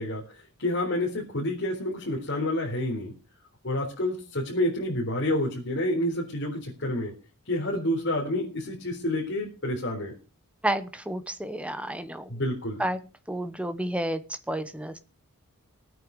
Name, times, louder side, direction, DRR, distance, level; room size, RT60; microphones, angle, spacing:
voice 1, 0.0-3.1 3.6-7.1 7.5-10.1 12.3-12.8, left 1 dB, 55° left, -2 dB, 4.1 m, -29 dB
voice 2, 10.6-12.3 12.8-13.0 13.3-15.0, right 1 dB, 5° right, 10 dB, 1.1 m, -31 dB
19.0 x 9.2 x 4.8 m, 0.33 s
head